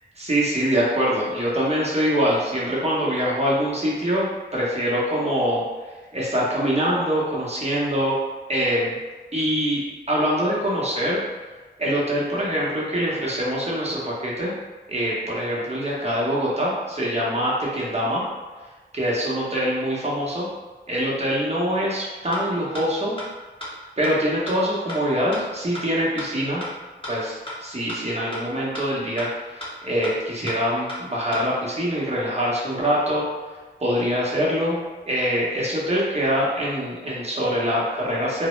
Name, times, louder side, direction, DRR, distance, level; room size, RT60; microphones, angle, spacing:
voice 1, 0.2-5.6 6.1-8.2 8.5-9.0 9.3-9.8 10.1-11.2 11.8-14.5 14.9-18.2 18.9-20.5 20.9-23.2 24.0-26.6 27.1-33.3 33.8-34.8 35.1-38.5, equal, 35° right, -6 dB, 0.8 m, -24 dB
sound 1, 22.3-22.4 22.7-22.8 23.2-23.3 23.6-23.7 24.0-24.1 24.5-24.6 24.9-25.0 25.3-25.4 25.7-25.8 26.2-26.3 26.6-26.7 27.0-27.1 27.5-27.6 27.9-28.0 28.3-28.4 28.7-28.8 29.2-29.3 29.6-29.7 30.0-30.1 30.5-30.6 30.9-31.0 31.3-31.4, left 1 dB, 25° left, 0.8 m, -33 dB
2.0 x 2.0 x 3.0 m, 1.3 s
cardioid pair, 40°, 19 cm